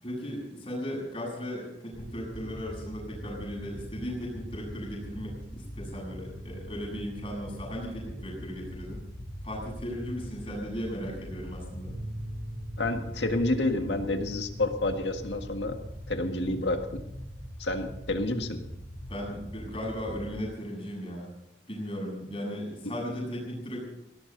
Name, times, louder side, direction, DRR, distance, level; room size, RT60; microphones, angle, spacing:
voice 1, 0.0-9.0 9.4-11.9 19.1-21.3 21.7-23.8, equal, 30° left, -2 dB, 7.8 m, -36 dB
sound 1, 1.9-20.4, equal, 5° right, 7.6 m, -42 dB
sound 2, 11.9-18.1, right 1 dB, 75° right, 6.7 m, -44 dB
voice 2, 12.8-15.8 16.1-17.0 17.6-18.6, left 2 dB, 75° left, 5 dB, 1.9 m, -29 dB
20.5 x 17.5 x 4.0 m, 0.86 s
head